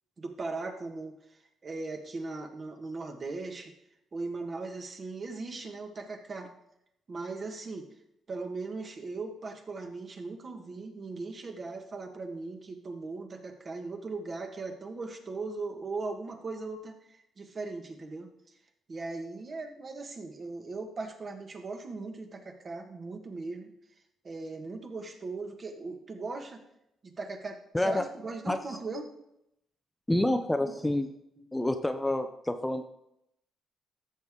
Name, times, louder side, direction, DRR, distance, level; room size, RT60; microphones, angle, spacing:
voice 1, 0.2-1.2 1.6-3.7 4.1-6.5 7.1-7.9 8.3-18.3 18.9-23.7 24.2-26.6 27.0-29.1 30.6-30.9 31.4-31.5, right 3 dB, 40° right, 4 dB, 1.6 m, -39 dB
voice 2, 27.7-28.0 28.5-28.6 30.1-31.1 31.5-32.8, left 1 dB, 10° left, 7 dB, 0.7 m, -28 dB
13.5 x 6.6 x 3.7 m, 0.79 s
cardioid pair, 90°, 0 cm